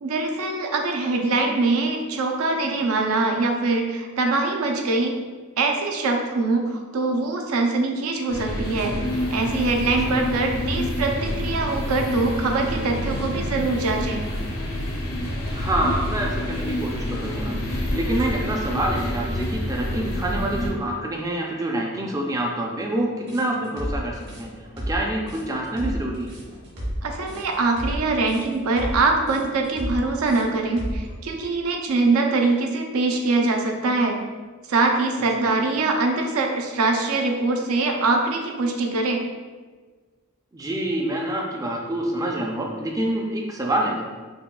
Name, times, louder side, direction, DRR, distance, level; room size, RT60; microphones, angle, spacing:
voice 1, 0.0-5.2 5.6-14.2 27.0-34.2 34.7-39.2, right 3 dB, 85° right, 2 dB, 0.5 m, -23 dB
sound 1, 8.3-20.7, left 1 dB, 80° left, 0.7 m, -28 dB
voice 2, 15.5-24.5 24.9-26.3 35.4-35.6 40.5-44.1, right 1 dB, 15° right, -1 dB, 0.3 m, -27 dB
sound 2, 23.3-31.1, equal, 55° right, 1.1 m, -32 dB
5.5 x 2.3 x 2.2 m, 1.4 s
head